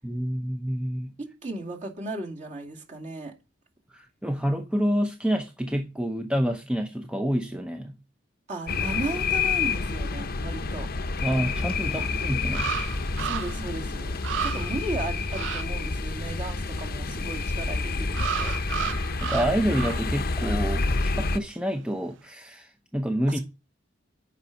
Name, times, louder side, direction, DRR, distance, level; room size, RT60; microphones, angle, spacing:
voice 1, 0.0-1.2 3.9-8.0 11.2-12.8 19.2-23.4, equal, 5° right, 0.6 m, -28 dB
voice 2, 1.2-3.3 8.5-10.9 12.0-12.1 13.2-18.5 23.3-23.4, right 2 dB, 40° right, 2.4 m, -36 dB
sound 1, 8.7-21.4, left 3 dB, 50° left, 0.8 m, -28 dB
sound 2, 11.7-11.8 12.5-13.7 14.0-14.1 14.2-14.8 15.3-15.6 18.1-20.1 20.4-20.6, right 9 dB, 70° right, 0.3 m, -33 dB
8.3 x 5.3 x 5.9 m
head